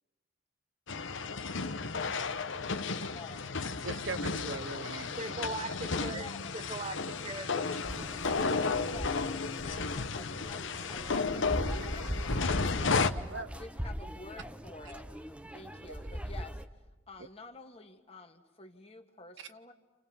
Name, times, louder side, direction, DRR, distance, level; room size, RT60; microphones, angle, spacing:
sound 1, 0.9-13.1, left 4 dB, 65° left, 1.0 m, -33 dB
voice 1, 3.1-3.6 6.0-6.5 8.8-13.0 13.3-15.1 15.5-16.6 17.1-19.7, left 3 dB, 30° left, 5 dB, 1.8 m, -49 dB
voice 2, 3.8-5.5 13.3-13.5 15.9-16.0 19.4-19.5, right 4 dB, 65° right, 12 dB, 0.9 m, -40 dB
voice 3, 5.2-6.3 6.5-7.8, right 2 dB, 30° right, 9 dB, 1.1 m, -39 dB
sound 2, 7.8-16.7, equal, 5° right, 0.8 m, -40 dB
29.0 x 28.5 x 5.6 m, 1.2 s
head